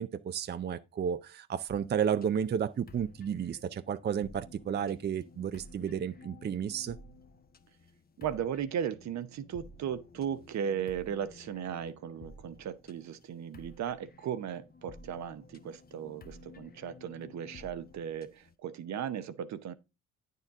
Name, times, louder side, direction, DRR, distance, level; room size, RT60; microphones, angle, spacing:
voice 1, 0.0-7.0, right 8 dB, 35° right, 0.5 m, -32 dB
sound 1, 1.7-18.5, left 3 dB, 30° left, 0.8 m, -54 dB
voice 2, 8.2-19.7, right 8 dB, 65° right, 0.9 m, -36 dB
9.2 x 6.6 x 3.6 m
cardioid pair, 90°, 30 cm